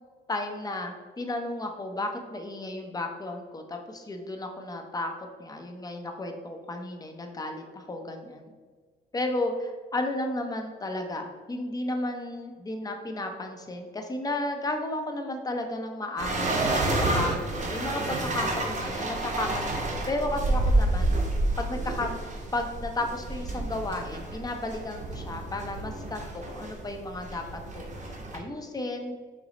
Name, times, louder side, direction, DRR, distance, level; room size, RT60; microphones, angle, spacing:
voice 1, 0.3-5.1 5.4-8.5 9.1-21.1 21.6-27.4 27.7-29.1, left 2 dB, 20° left, 4 dB, 0.6 m, -33 dB
sound 1, 16.2-28.4, right 2 dB, 40° right, 0.8 m, -29 dB
4.8 x 2.0 x 3.8 m, 1.5 s
cardioid pair, 90°, 20 cm